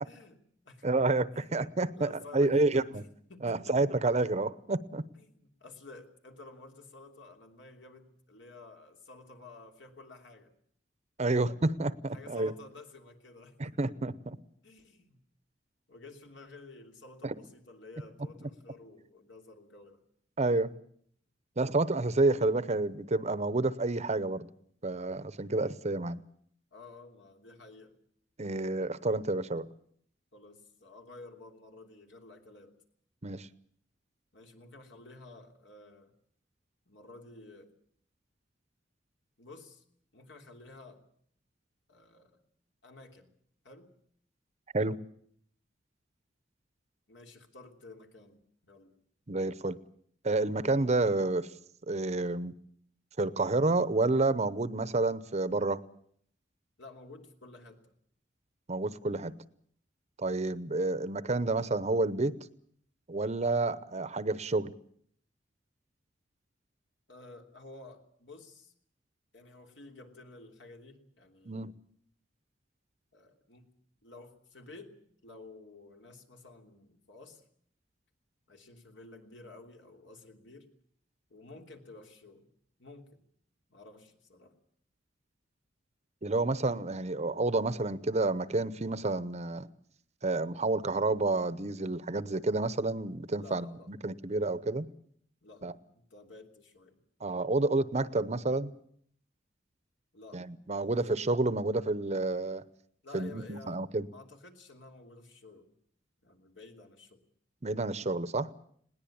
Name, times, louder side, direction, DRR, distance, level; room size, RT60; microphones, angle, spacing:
voice 1, 0.0-0.9 1.3-1.5 1.9-3.0 3.3-3.8 5.1-10.5 11.2-11.5 12.1-13.8 14.6-15.2 15.9-20.0 26.7-28.0 30.3-32.7 34.3-36.1 36.9-37.7 39.4-39.8 40.1-41.0 41.9-42.4 42.8-43.3 43.6-43.9 47.1-48.9 56.8-57.8 67.1-68.7 69.3-71.6 73.1-73.7 74.0-74.9 75.2-77.4 78.5-80.7 81.3-82.5 82.8-83.2 83.7-84.6 93.3-93.9 95.4-97.0 100.1-100.4 100.8-101.0 103.0-105.7 106.2-107.2, left 3 dB, 75° left, 4 dB, 3.1 m, -52 dB
voice 2, 0.8-2.8 3.4-5.0 11.2-12.5 13.6-14.4 17.2-17.3 20.4-20.7 21.6-24.5 24.8-26.2 28.4-29.6 33.2-33.5 44.7-45.0 49.3-49.8 50.2-51.5 51.9-52.5 53.2-55.8 58.7-59.3 60.2-62.4 63.1-64.7 71.5-71.7 86.2-89.7 90.2-94.9 95.6-95.7 97.2-98.7 100.3-102.6 103.1-104.1 107.6-108.5, right 2 dB, 40° right, 16 dB, 0.8 m, -29 dB
21.0 x 18.5 x 8.6 m, 0.63 s
head